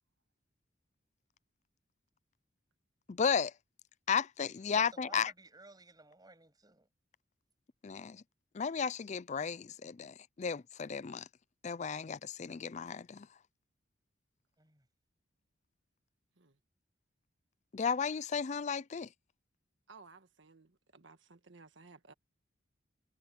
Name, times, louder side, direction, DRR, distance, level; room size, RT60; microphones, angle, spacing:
voice 1, 3.1-3.5 4.1-5.3 7.8-8.2 8.5-11.2 11.6-13.3 17.7-19.1, left 6 dB, 35° left, 0.4 m, -34 dB
voice 2, 4.7-6.9 14.6-14.9, right 2 dB, 20° right, 7.2 m, -56 dB
voice 3, 19.9-22.1, right 4 dB, 70° right, 1.6 m, -58 dB
head